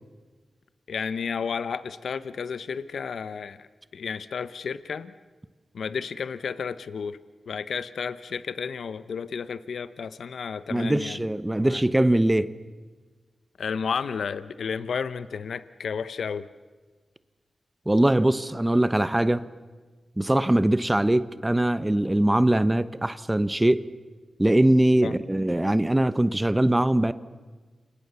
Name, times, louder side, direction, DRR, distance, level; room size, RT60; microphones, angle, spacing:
voice 1, 0.9-3.7 3.9-5.1 5.7-7.2 7.5-11.2 11.6-11.8 13.6-16.5 25.0-25.1, left 6 dB, 85° left, 0.9 m, -32 dB
voice 2, 10.7-12.5 17.9-19.4 20.2-23.8 24.4-27.1, right 1 dB, 15° right, 1.1 m, -22 dB
29.5 x 26.5 x 7.0 m
cardioid pair, 60°, 0 cm